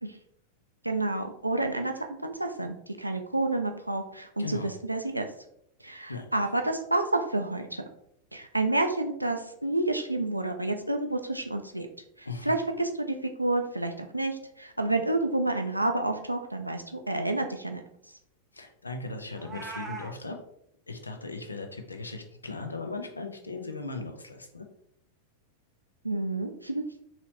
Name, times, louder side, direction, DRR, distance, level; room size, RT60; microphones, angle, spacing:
voice 1, 0.8-5.3 5.8-7.8 8.3-11.9 12.2-17.8 26.0-26.8, right 2 dB, 85° right, 5 dB, 0.4 m, -29 dB
voice 2, 4.4-4.8 6.1-6.4 12.3-12.5 18.5-20.4 20.9-24.7, left 3 dB, 80° left, 5 dB, 0.5 m, -38 dB
Meow, 19.3-20.1, right 4 dB, 15° right, 0.6 m, -39 dB
4.0 x 3.0 x 2.8 m, 0.73 s
figure-of-eight pair, 90°, 0 cm